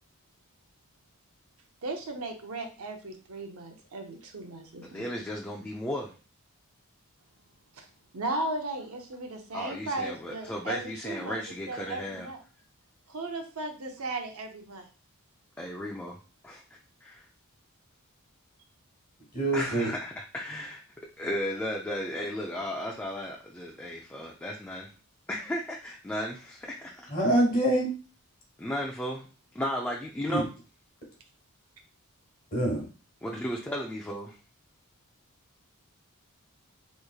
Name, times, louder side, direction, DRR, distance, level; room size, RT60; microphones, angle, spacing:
voice 1, 1.8-5.1 7.7-7.9 8.1-11.4 11.7-12.4 13.1-14.9, right 2 dB, 70° right, 4 dB, 0.7 m, -36 dB
voice 2, 4.8-6.1 9.5-12.3 15.6-16.2 16.4-17.3 19.5-20.8 21.2-24.9 25.3-27.1 28.6-29.3 29.5-30.5 33.2-34.4, left 1 dB, 10° left, -1 dB, 0.3 m, -35 dB
voice 3, 19.3-19.9 27.1-27.9 30.3-30.4 32.5-32.8, right 1 dB, 40° left, -1 dB, 1.4 m, -25 dB
3.5 x 3.1 x 2.4 m, 0.36 s
head